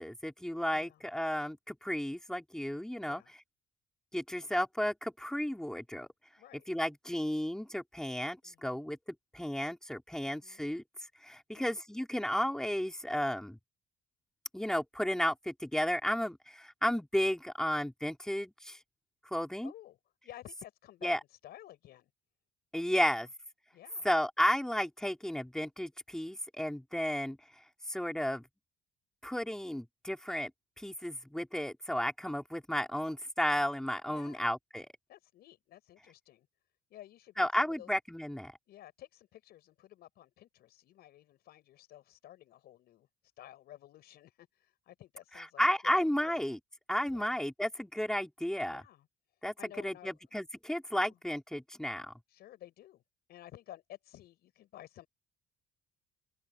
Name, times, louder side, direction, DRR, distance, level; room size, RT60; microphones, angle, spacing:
voice 1, 0.0-3.2 4.1-6.1 6.7-9.0 9.3-10.8 11.2-13.6 14.5-18.8 19.3-19.7 21.0-21.2 22.7-23.3 24.0-27.4 27.9-28.4 29.2-30.5 30.8-34.9 37.4-38.5 45.3-46.6 46.9-48.8 49.4-49.5 49.8-52.1, equal, 5° left, 2.9 m, -33 dB
voice 2, 0.7-1.0 3.0-3.3 6.4-6.7 8.4-8.8 10.2-10.6 11.5-11.8 19.6-20.0 20.2-21.1 21.4-22.1 23.7-24.1 34.1-34.5 35.1-36.5 36.9-37.9 38.7-43.1 43.4-46.4 47.1-47.4 48.7-49.1 49.6-50.2 50.9-51.2 52.3-53.0 53.3-55.1, left 13 dB, 70° left, 6.4 m, -53 dB
open air
cardioid pair, 110°, 17 cm